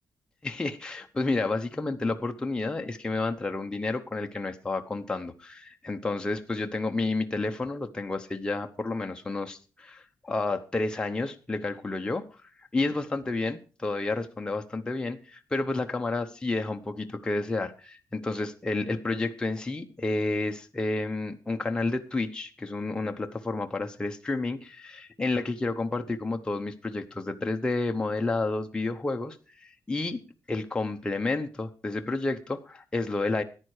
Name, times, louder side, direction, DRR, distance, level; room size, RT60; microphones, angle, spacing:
voice 1, 0.4-12.2 12.7-30.2 30.5-33.4, left 2 dB, 15° left, 4 dB, 0.8 m, -30 dB
14.0 x 10.0 x 4.8 m, 0.35 s
wide cardioid pair, 180°, 7 cm